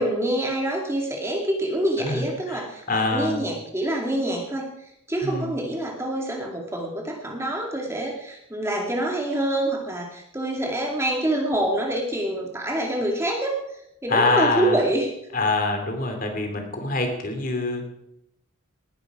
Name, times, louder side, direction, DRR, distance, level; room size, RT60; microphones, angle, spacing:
voice 1, 0.0-4.7 5.1-13.6 14.0-15.1, right 1 dB, 10° right, 0 dB, 2.3 m, -26 dB
voice 2, 2.0-3.4 5.2-5.5 14.1-14.8 15.3-17.9, left 3 dB, 40° left, 4 dB, 2.8 m, -25 dB
19.5 x 11.0 x 4.9 m, 0.78 s
head